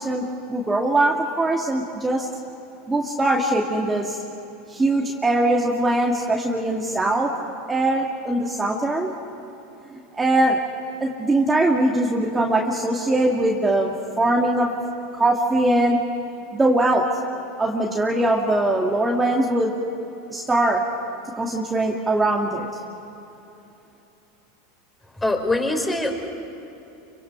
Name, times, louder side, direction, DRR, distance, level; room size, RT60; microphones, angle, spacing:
voice 1, 0.0-2.3 2.9-4.2 4.7-7.3 7.7-9.1 9.9-10.6 11.0-14.7 15.2-16.0 16.5-17.0 17.6-19.7 20.3-20.8 21.4-22.7, right 1 dB, 15° right, -1 dB, 2.1 m, -21 dB
voice 2, 25.2-26.3, left 2 dB, 10° left, 3 dB, 4.0 m, -23 dB
29.0 x 24.5 x 5.9 m, 2.9 s
hypercardioid pair, 100°, 0 cm